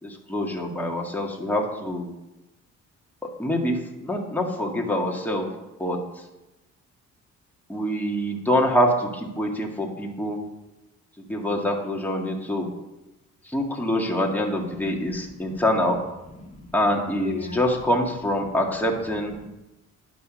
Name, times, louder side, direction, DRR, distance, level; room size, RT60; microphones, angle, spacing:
voice 1, 0.0-2.1 3.4-5.5 5.8-6.0 7.7-10.4 11.2-12.7 13.5-16.0 16.7-19.3, equal, 5° left, -1 dB, 2.1 m, -25 dB
voice 2, 15.2-15.6 16.3-16.8 17.2-17.6 19.4-19.5, left 3 dB, 25° left, -3 dB, 2.9 m, -37 dB
11.0 x 6.1 x 6.3 m, 0.99 s
cardioid pair, 90°, 30 cm